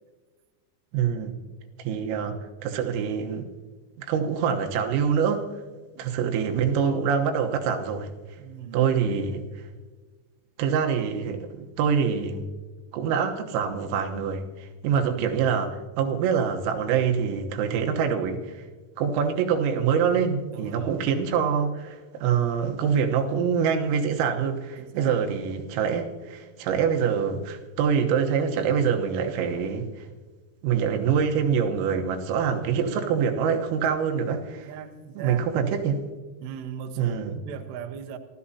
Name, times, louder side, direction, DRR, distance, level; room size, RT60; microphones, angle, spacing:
voice 1, 0.9-1.4 1.8-3.5 4.0-5.5 6.0-8.1 8.7-9.4 10.6-12.5 12.9-18.7 19.0-30.1 30.6-34.7 35.2-36.1 37.0-37.4, right 7 dB, 90° right, 3.9 m, -25 dB
voice 2, 8.4-8.9 15.0-15.4 20.5-21.0 24.8-25.2 32.7-33.3 34.5-35.5 36.4-38.2, right 8 dB, 75° right, 2.7 m, -39 dB
26.0 x 14.0 x 2.8 m
omnidirectional pair, 5.8 m